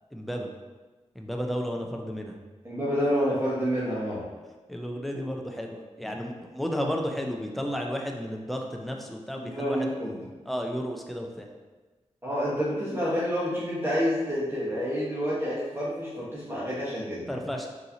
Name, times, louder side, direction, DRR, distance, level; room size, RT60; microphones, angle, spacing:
voice 1, 0.1-0.5 1.1-2.4 4.7-9.9 10.5-11.5 17.3-17.7, equal, ahead, 1 dB, 0.5 m, -32 dB
voice 2, 2.6-4.2 9.4-10.1 12.2-17.2, equal, 20° right, -9 dB, 1.2 m, -28 dB
3.8 x 2.8 x 2.8 m, 1.3 s
cardioid pair, 45°, 12 cm